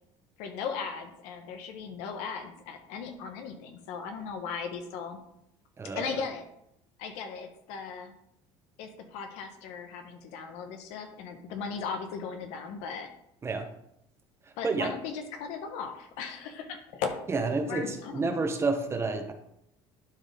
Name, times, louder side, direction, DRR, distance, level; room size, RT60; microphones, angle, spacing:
voice 1, 0.4-5.2 5.9-6.4 7.0-8.1 8.8-13.1 14.6-17.2 17.7-18.5, left 6 dB, 85° left, 6 dB, 1.2 m, -37 dB
voice 2, 5.8-6.2 13.4-13.7 14.6-14.9 17.3-19.3, right 3 dB, 25° right, 5 dB, 1.1 m, -29 dB
11.5 x 4.2 x 3.6 m, 0.78 s
cardioid pair, 115°, 11 cm